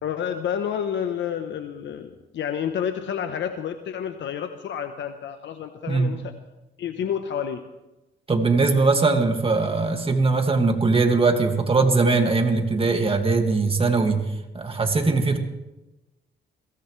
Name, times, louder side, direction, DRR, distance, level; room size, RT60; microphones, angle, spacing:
voice 1, 0.0-6.3 6.8-7.6, left 8 dB, 70° left, 7 dB, 1.0 m, -29 dB
voice 2, 8.3-14.2 14.5-15.4, right 3 dB, 30° right, 4 dB, 2.2 m, -20 dB
22.0 x 17.5 x 3.3 m, 1.0 s
cardioid pair, 90°, 20 cm